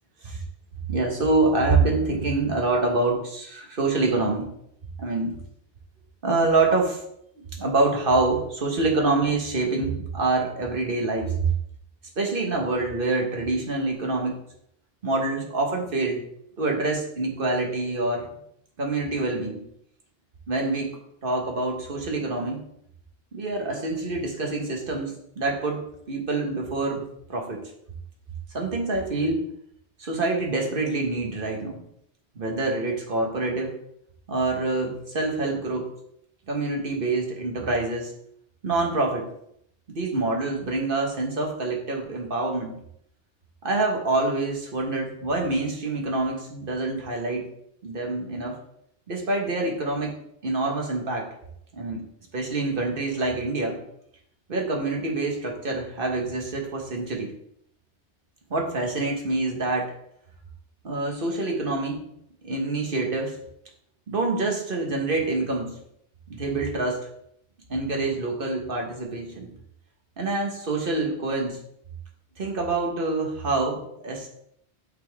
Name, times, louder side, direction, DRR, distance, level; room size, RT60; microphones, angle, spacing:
voice 1, 0.9-4.5 5.0-5.4 6.2-7.0 7.6-11.5 12.2-14.4 15.0-16.2 16.6-18.3 18.8-19.6 20.5-20.9 21.2-22.6 23.3-27.0 27.3-27.6 28.5-29.5 30.0-31.8 32.3-33.7 34.3-35.9 36.5-38.1 38.6-39.3 39.9-42.7 43.6-47.5 47.8-48.5 49.1-50.1 50.4-51.3 51.7-52.0 52.3-53.8 54.5-57.3 58.5-59.9 60.8-62.0 62.4-63.4 64.1-65.8 66.3-67.1 67.7-69.5 70.2-71.6 72.4-74.3, right 3 dB, 55° right, 1 dB, 1.4 m, -26 dB
8.3 x 4.3 x 3.5 m, 0.72 s
omnidirectional pair, 1.1 m